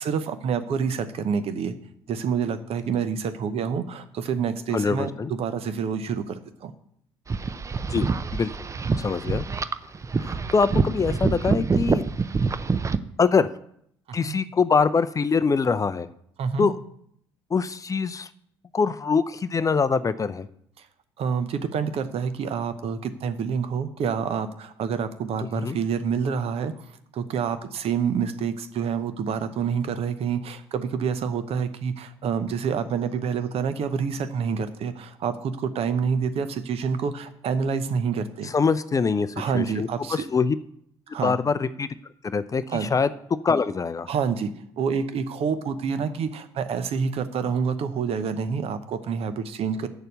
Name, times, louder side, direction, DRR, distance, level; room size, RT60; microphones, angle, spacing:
voice 1, 0.0-1.7 2.1-6.7 14.1-14.4 16.4-16.7 20.8-20.9 21.2-26.7 27.1-38.5 39.4-40.2 41.1-41.4 42.7-42.9 44.1-44.5 44.8-49.9, right 6 dB, 50° right, 11 dB, 0.9 m, -27 dB
voice 2, 4.7-5.3 7.9-8.5 8.9-9.4 10.2-12.0 13.2-13.5 14.1-16.1 16.6-16.7 17.5-18.3 18.7-20.5 25.5-25.8 38.4-40.6 41.2-41.9 42.2-43.1 43.4-44.1, left 5 dB, 25° left, 14 dB, 0.5 m, -24 dB
sound 1, 7.3-13.0, right 4 dB, 25° right, 0.5 m, -26 dB
6.9 x 6.7 x 7.9 m, 0.70 s
hypercardioid pair, 55°, 13 cm